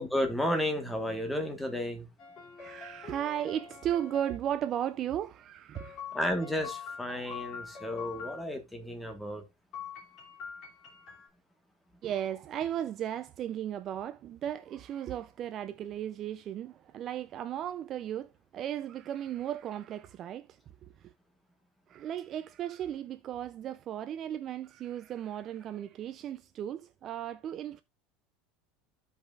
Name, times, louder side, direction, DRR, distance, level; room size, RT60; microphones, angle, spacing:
voice 1, 0.0-2.1 6.1-9.4, left 1 dB, 5° left, 1.3 m, -32 dB
sound 1, 2.2-4.4 5.7-8.4 9.7-11.3, left 7 dB, 35° left, 2.6 m, -44 dB
voice 2, 2.6-6.0 12.0-21.1 21.9-27.8, right 10 dB, 30° right, 0.3 m, -36 dB
15.0 x 5.4 x 2.4 m
cardioid pair, 175°, 0 cm